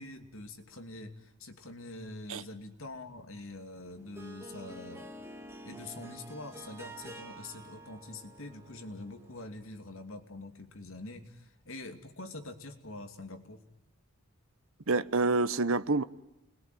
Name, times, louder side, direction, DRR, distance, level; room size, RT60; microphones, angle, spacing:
voice 1, 0.0-5.1 5.6-13.6, left 2 dB, 65° left, 7 dB, 2.6 m, -45 dB
Harp, 3.8-9.6, right 1 dB, 10° right, 2.3 m, -48 dB
voice 2, 14.9-16.0, right 3 dB, 70° right, 15 dB, 1.0 m, -27 dB
30.0 x 21.5 x 9.3 m, 0.91 s
head